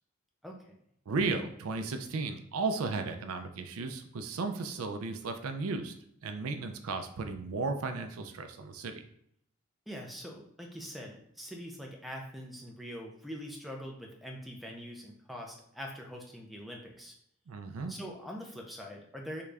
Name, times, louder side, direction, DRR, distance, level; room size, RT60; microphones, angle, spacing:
voice 1, 0.4-0.7 9.9-17.1 17.9-19.4, equal, ahead, 0 dB, 0.4 m, -43 dB
voice 2, 1.1-5.9 6.2-9.0 17.5-17.9, right 3 dB, 75° right, 7 dB, 0.4 m, -34 dB
3.7 x 2.3 x 3.2 m, 0.71 s
head